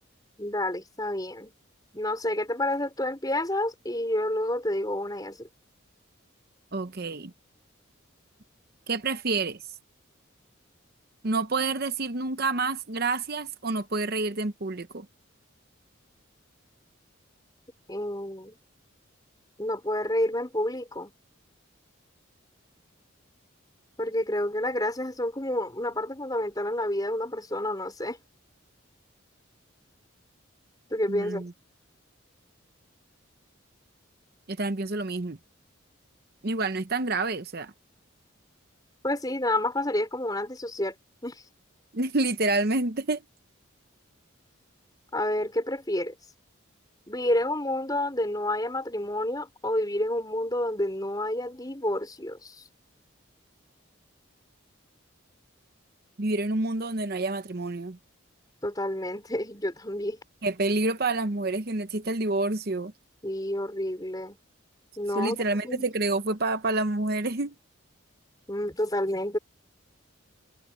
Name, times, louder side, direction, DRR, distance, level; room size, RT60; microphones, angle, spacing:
voice 1, 0.4-1.5 1.9-5.5 17.9-18.6 19.6-21.1 24.0-28.2 30.9-31.4 39.0-40.9 41.2-41.4 45.1-46.1 47.1-52.7 58.6-60.2 63.2-64.4 65.0-65.9 68.5-69.4, left 1 dB, 20° left, 5.0 m, -29 dB
voice 2, 6.7-7.3 8.9-9.6 11.2-15.1 31.1-31.5 34.5-35.4 36.4-37.7 41.9-43.2 56.2-58.0 60.4-62.9 65.1-67.5, right 3 dB, 45° right, 0.8 m, -28 dB
head